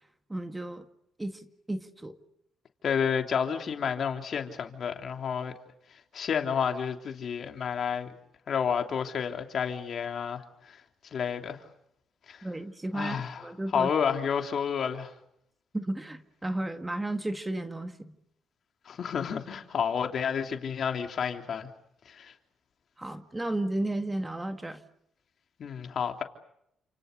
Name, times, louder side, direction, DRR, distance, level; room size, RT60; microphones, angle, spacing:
voice 1, 0.3-0.8 1.2-2.2 12.4-13.9 15.7-18.2 23.0-24.8, right 1 dB, 15° right, 2.0 m, -33 dB
voice 2, 2.8-5.5 6.1-8.1 8.5-10.4 10.7-10.8 11.1-11.6 12.3-12.5 12.9-13.5 13.7-15.1 18.8-21.7 22.0-22.3 25.6-26.2, left 7 dB, 55° left, 3.1 m, -30 dB
30.0 x 27.5 x 6.7 m
cardioid pair, 90°, 0 cm